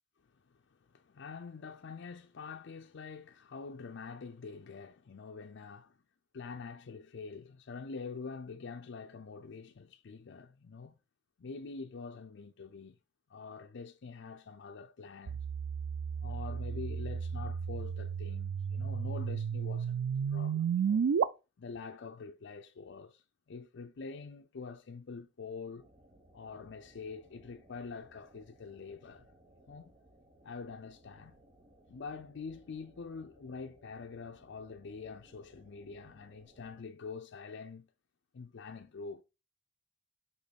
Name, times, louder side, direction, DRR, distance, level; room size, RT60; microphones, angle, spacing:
voice 1, 0.3-6.0 6.3-10.9 11.4-13.0 13.3-15.4 16.2-21.0 21.6-23.2 23.5-25.9 26.3-29.3 29.7-29.9 30.4-31.4 31.9-37.9 38.3-39.2, left 4 dB, 65° left, 0.5 m, -45 dB
sound 1, 15.3-21.2, right 7 dB, 75° right, 0.3 m, -33 dB
sound 2, 25.8-36.8, right 1 dB, 30° right, 1.0 m, -63 dB
6.4 x 3.0 x 5.1 m
head